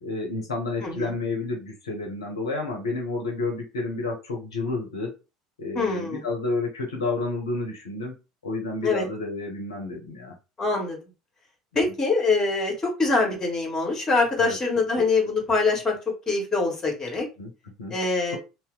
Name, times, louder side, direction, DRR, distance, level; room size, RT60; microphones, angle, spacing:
voice 1, 0.0-5.2 5.6-8.1 8.4-10.3 11.9-12.0 14.4-14.6 15.0-15.1 17.4-18.0, left 3 dB, 75° left, 0 dB, 0.6 m, -30 dB
voice 2, 0.8-1.1 5.7-6.2 8.8-9.0 10.6-11.0 11.7-16.0 16.3-17.2 17.9-18.4, left 3 dB, 20° left, 0 dB, 1.4 m, -24 dB
2.7 x 2.0 x 3.7 m, 0.28 s
figure-of-eight pair, 65°, 3 cm